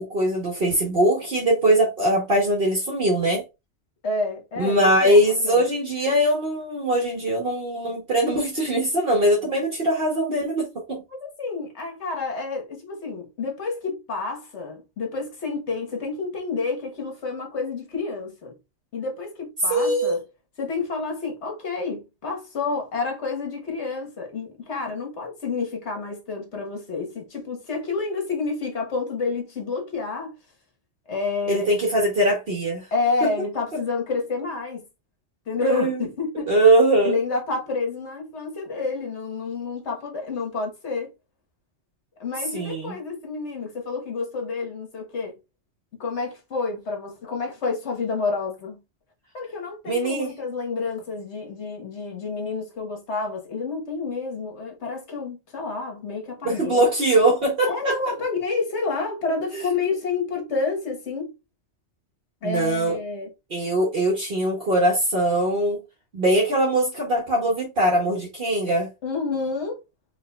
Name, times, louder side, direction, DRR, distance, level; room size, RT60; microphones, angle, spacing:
voice 1, 0.0-3.4 4.6-11.0 19.7-20.2 31.5-32.9 33.2-33.3 35.6-36.0 36.5-37.2 42.5-42.9 49.9-50.3 56.4-57.9 59.5-59.7 62.4-63.0 63.5-65.8 66.1-68.9, right 1 dB, 55° right, 1.3 m, -21 dB
voice 2, 4.0-5.6 11.2-18.5 18.9-20.2 20.6-30.3 31.1-31.7 32.9-34.8 35.5-36.5 37.0-41.1 42.2-45.4 46.0-48.8 49.3-56.8 57.7-61.3 62.4-63.3 69.0-69.8, left 4 dB, 70° left, 1.6 m, -29 dB
4.8 x 3.3 x 2.3 m
omnidirectional pair, 1.2 m